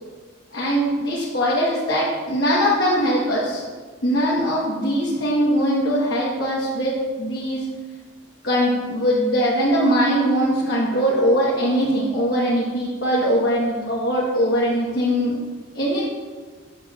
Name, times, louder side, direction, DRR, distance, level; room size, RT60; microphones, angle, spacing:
voice 1, 0.5-3.6 4.0-7.6 8.4-15.3 15.7-16.0, equal, 55° left, -7 dB, 1.1 m, -21 dB
7.2 x 6.7 x 2.4 m, 1.5 s
head